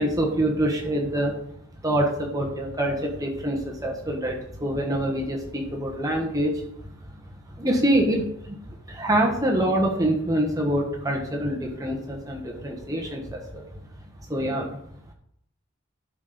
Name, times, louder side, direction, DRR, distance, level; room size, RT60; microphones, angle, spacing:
voice 1, 0.0-1.3 1.8-6.6 7.5-13.6 14.3-14.8, right 1 dB, 15° right, 0 dB, 1.3 m, -25 dB
11.5 x 4.3 x 5.1 m, 0.73 s
head